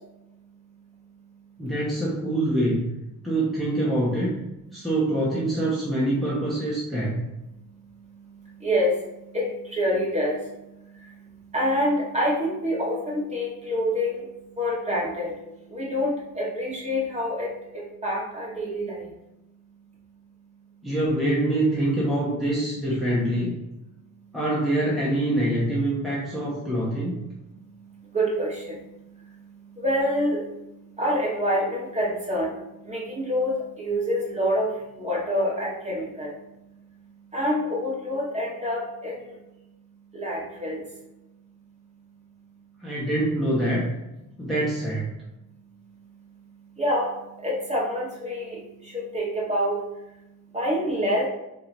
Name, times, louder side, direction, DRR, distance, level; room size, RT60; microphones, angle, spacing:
voice 1, 1.6-2.9 3.2-4.4 4.7-7.2 20.8-23.6 24.3-27.3 42.8-43.9 44.4-45.1, right 1 dB, ahead, -7 dB, 1.1 m, -25 dB
voice 2, 8.6-9.0 9.3-10.4 11.5-14.2 14.6-15.3 15.7-19.0 28.1-28.7 29.8-30.4 31.0-32.5 32.9-34.7 35.0-36.3 37.3-39.3 40.1-40.8 46.8-47.1 47.4-48.6 48.9-49.8 50.5-51.3, equal, 20° right, -5 dB, 1.6 m, -26 dB
4.4 x 2.9 x 3.9 m, 0.92 s
cardioid pair, 110°, 33 cm